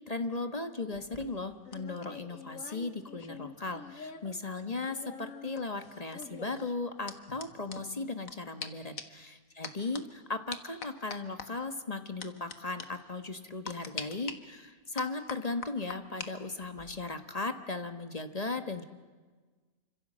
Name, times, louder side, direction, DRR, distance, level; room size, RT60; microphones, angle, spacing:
voice 1, 0.1-18.8, left 3 dB, 25° left, 8 dB, 1.4 m, -37 dB
sound 1, 0.9-4.3 4.6-8.3 8.6-8.7 9.0-9.2 9.6-10.0 10.5-11.5 12.2-12.5 12.8-12.9 13.7-14.3 15.0-16.3 16.6-17.0, left 5 dB, 65° left, 1.9 m, -43 dB
28.5 x 26.0 x 7.6 m, 1.4 s
omnidirectional pair, 1.6 m